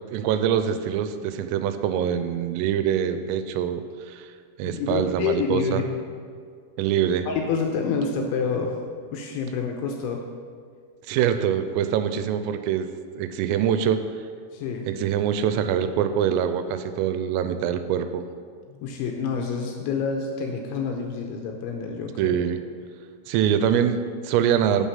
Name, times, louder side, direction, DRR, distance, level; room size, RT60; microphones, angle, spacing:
voice 1, 0.1-4.3 4.6-5.8 6.8-7.3 11.1-12.9 13.2-14.0 14.9-18.3 22.2-22.6 23.3-24.9, right 9 dB, 85° right, 9 dB, 3.2 m, -24 dB
voice 2, 4.6-5.9 7.3-8.8 9.1-10.2 14.5-14.9 18.7-22.4, left 5 dB, 80° left, 2 dB, 2.9 m, -28 dB
8.8 x 7.2 x 5.6 m, 2.1 s
omnidirectional pair, 5.9 m